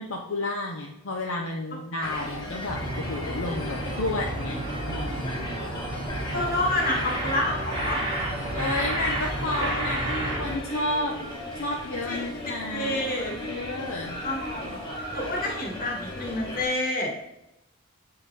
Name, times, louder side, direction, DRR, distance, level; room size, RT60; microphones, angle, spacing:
voice 1, 0.0-5.5 8.5-11.2 11.5-14.2, left 2 dB, 60° left, 0 dB, 0.7 m, -32 dB
sound 1, 2.0-16.7, left 1 dB, 20° left, 1.2 m, -36 dB
sound 2, 2.7-10.6, right 1 dB, 25° right, 1.3 m, -31 dB
voice 2, 6.3-8.0 12.0-12.4 12.7-13.4 14.2-14.8 15.1-17.1, left 1 dB, 40° left, -1 dB, 1.5 m, -28 dB
7.7 x 3.9 x 4.1 m, 0.86 s
head